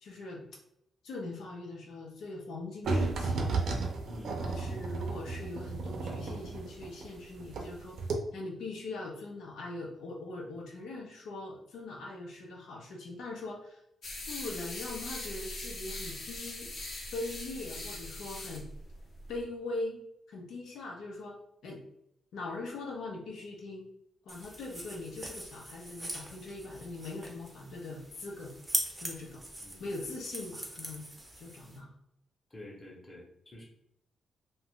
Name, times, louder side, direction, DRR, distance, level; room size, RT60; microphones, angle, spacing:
voice 1, 0.0-0.5 1.0-3.6 4.4-8.0 8.3-13.8 14.3-16.7 17.1-18.7 19.3-20.0 20.3-21.4 21.6-21.8 22.3-23.9 24.2-28.6 29.0-29.4 29.8-31.0 31.4-31.9, left 2 dB, 85° left, -1 dB, 0.7 m, -41 dB
sound 1, 2.8-7.7 8.0-8.1, right 3 dB, 65° right, 0.5 m, -33 dB
voice 2, 4.0-4.6 29.6-29.9 31.1-31.2 32.5-33.6, left 1 dB, 15° left, -3 dB, 0.9 m, -49 dB
sound 2, 14.0-19.4, left 1 dB, 50° left, 0.8 m, -41 dB
sound 3, 24.3-31.8, right 1 dB, 10° right, 0.6 m, -41 dB
2.6 x 2.3 x 3.6 m, 0.77 s
cardioid pair, 145°, 0 cm